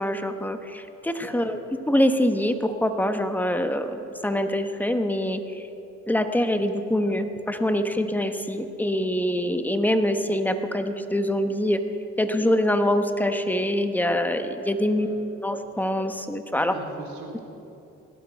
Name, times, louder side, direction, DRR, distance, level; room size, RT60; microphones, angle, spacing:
voice 1, 0.0-1.6 1.9-5.6 6.1-11.8 12.2-15.1 15.4-16.7, left 1 dB, 5° left, 7 dB, 1.2 m, -24 dB
voice 2, 14.9-15.2 16.5-17.4, right 4 dB, 75° right, 1 dB, 3.3 m, -42 dB
18.0 x 12.5 x 5.9 m, 2.9 s
cardioid pair, 80°, 30 cm